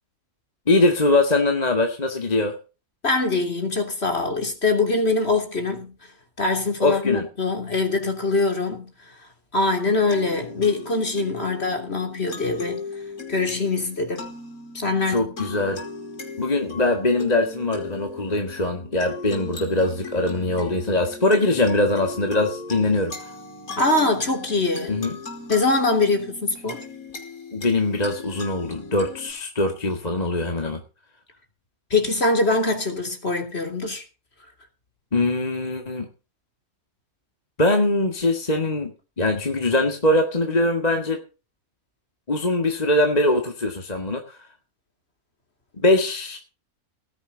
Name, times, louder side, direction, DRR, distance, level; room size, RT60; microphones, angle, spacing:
voice 1, 0.7-2.6 6.8-7.3 15.1-15.8 16.4-23.3 24.9-25.2 27.5-30.8 35.1-36.1 37.6-38.9 39.2-41.2 42.3-44.5 45.8-46.4, left 2 dB, 25° left, 2.1 m, -22 dB
voice 2, 3.0-5.9 6.4-8.9 9.5-12.8 13.3-14.3 14.7-15.5 23.8-25.0 25.5-26.8 31.9-34.0, left 3 dB, 45° left, 3.4 m, -23 dB
sound 1, 9.6-29.3, left 3 dB, 70° left, 5.7 m, -37 dB
18.5 x 10.5 x 4.0 m
omnidirectional pair, 1.6 m